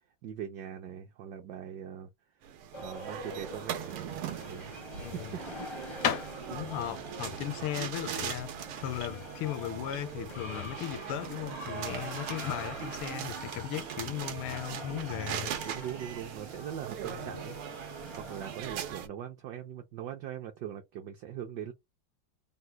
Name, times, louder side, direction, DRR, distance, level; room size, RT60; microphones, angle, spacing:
voice 1, 0.2-2.1 2.8-5.7 15.6-17.6 18.2-21.7, right 9 dB, 70° right, 1.0 m, -41 dB
sound 1, 2.4-19.1, right 10 dB, 90° right, 1.6 m, -40 dB
sound 2, 2.7-19.0, left 1 dB, 40° left, 0.4 m, -46 dB
voice 2, 5.0-5.4 6.5-8.5 8.8-15.5 17.0-17.4, left 12 dB, 85° left, 1.5 m, -37 dB
sound 3, 5.9-9.8, left 8 dB, 70° left, 0.8 m, -37 dB
3.8 x 2.1 x 4.3 m
omnidirectional pair, 2.3 m